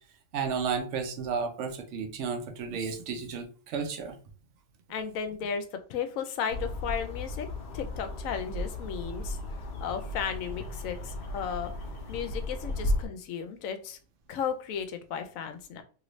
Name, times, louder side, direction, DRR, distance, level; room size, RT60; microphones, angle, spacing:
voice 1, 0.3-4.2, right 5 dB, 60° right, 5 dB, 0.9 m, -32 dB
voice 2, 4.9-7.5 7.7-9.4 9.8-11.7 12.1-14.0 14.3-15.8, left 7 dB, 75° left, 8 dB, 0.9 m, -34 dB
sound 1, 6.5-13.1, left 1 dB, 55° left, 0.6 m, -35 dB
2.9 x 2.6 x 3.1 m, 0.39 s
omnidirectional pair, 1.5 m